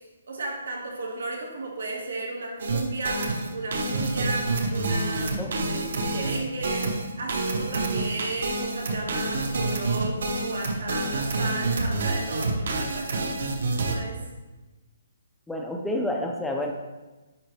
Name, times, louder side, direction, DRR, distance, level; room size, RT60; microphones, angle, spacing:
voice 1, 0.3-14.2, right 2 dB, 85° right, -1 dB, 1.8 m, -34 dB
sound 1, 2.6-14.0, right 2 dB, 60° right, 1.0 m, -27 dB
voice 2, 15.5-16.7, left 1 dB, 5° left, 2 dB, 0.4 m, -29 dB
9.8 x 3.9 x 3.3 m, 1.2 s
hypercardioid pair, 170°, 0 cm